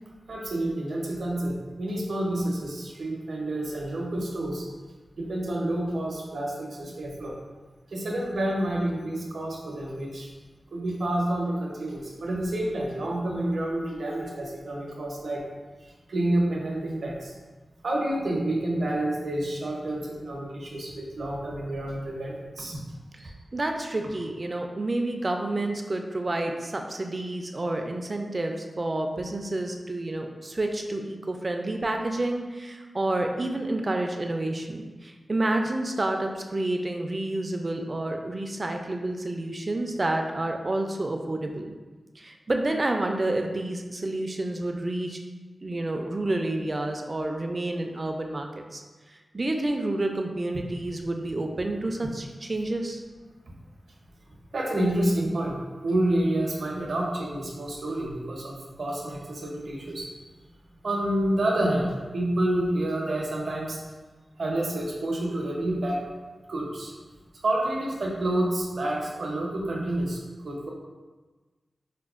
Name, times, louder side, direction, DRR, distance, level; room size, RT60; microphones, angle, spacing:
voice 1, 0.3-4.7 5.2-7.4 7.9-10.3 10.7-15.4 15.8-17.3 17.8-22.8 54.5-60.1 60.8-63.8 64.4-66.0 66.5-66.9 67.4-70.2 70.4-70.7, right 1 dB, 75° right, -2 dB, 0.6 m, -29 dB
voice 2, 23.2-41.7 42.2-45.2 45.6-48.8 49.3-53.0, right 2 dB, 40° right, 4 dB, 0.3 m, -29 dB
5.0 x 2.1 x 2.3 m, 1.3 s
wide cardioid pair, 75°, 0 cm